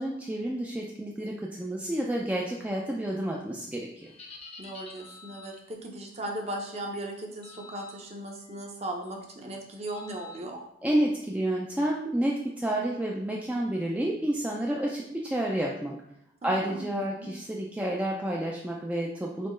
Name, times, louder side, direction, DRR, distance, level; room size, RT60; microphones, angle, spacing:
voice 1, 0.0-4.1 10.8-16.0 16.4-19.5, right 1 dB, 5° right, -2 dB, 0.3 m, -30 dB
sound 1, 4.0-5.7 7.4-7.9 8.4-8.7 9.9-10.4, left 4 dB, 35° left, 0.7 m, -48 dB
voice 2, 4.6-10.6 16.4-16.8 17.2-17.3, right 1 dB, 35° right, 1 dB, 0.7 m, -37 dB
4.2 x 3.9 x 3.1 m, 0.76 s
head